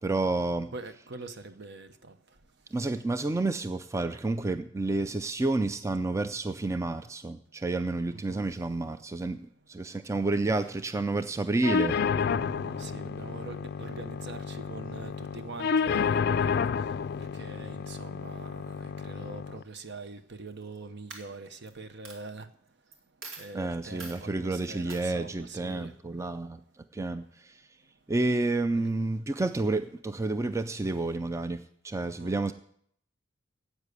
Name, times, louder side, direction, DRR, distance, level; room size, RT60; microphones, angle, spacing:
voice 1, 0.0-0.7 2.7-12.0 23.5-26.6 26.9-27.6 28.1-32.5, right 2 dB, 15° right, 0.4 m, -30 dB
voice 2, 0.7-1.9 8.1-8.5 12.1-16.7 17.3-22.5 23.4-25.9 28.7-28.9 32.2-32.3, right 3 dB, 60° right, 0.9 m, -43 dB
sound 1, 11.6-19.6, left 6 dB, 55° left, 0.4 m, -30 dB
Coin (dropping), 20.5-20.8 21.1-21.7 22.0-22.2 22.9-23.0 23.2-23.5 24.0-24.2 24.9-25.0, right 3 dB, 75° right, 2.3 m, -43 dB
10.5 x 8.2 x 8.2 m
head